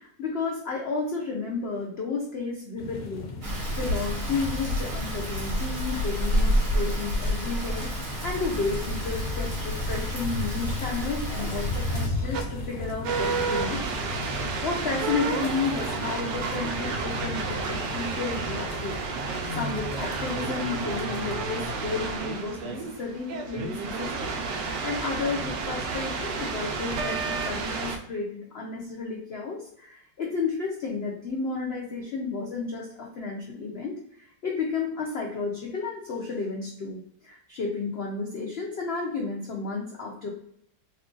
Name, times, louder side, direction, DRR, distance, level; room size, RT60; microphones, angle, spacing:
voice 1, 0.0-3.3 3.8-13.9 14.6-40.3, left 4 dB, 90° left, 0 dB, 0.5 m, -32 dB
sound 1, 2.8-21.4, left 2 dB, 65° left, 1.1 m, -36 dB
Rain, 3.4-12.1, equal, 55° right, 1.5 m, -29 dB
sound 2, 12.3-12.4 13.0-28.0, right 4 dB, 80° right, 1.2 m, -31 dB
3.2 x 2.4 x 3.6 m, 0.70 s
omnidirectional pair, 1.9 m